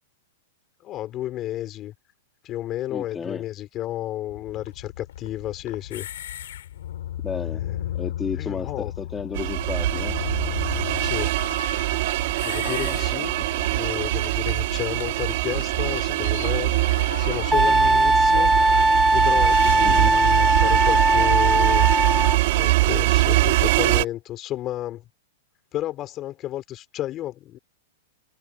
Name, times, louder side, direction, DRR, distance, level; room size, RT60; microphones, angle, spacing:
voice 1, 0.8-1.9 2.4-6.1 7.5-7.8 8.3-8.9 10.7-11.3 12.4-13.3 13.7-18.6 19.1-21.9 22.6-25.1 25.7-27.6, left 13 dB, 35° left, 3.8 m, -32 dB
voice 2, 2.9-3.4 7.2-7.6 7.9-10.2 12.6-13.7 19.8-20.1, left 5 dB, 15° left, 2.2 m, -33 dB
sound 1, 4.3-20.1, left 12 dB, 70° left, 4.2 m, -36 dB
sound 2, 9.3-24.1, right 19 dB, 60° right, 2.0 m, -23 dB
Wind instrument woodwind instrument, 17.5-22.4, right 2 dB, 5° right, 0.8 m, -19 dB
hypercardioid pair, 120°, 0 cm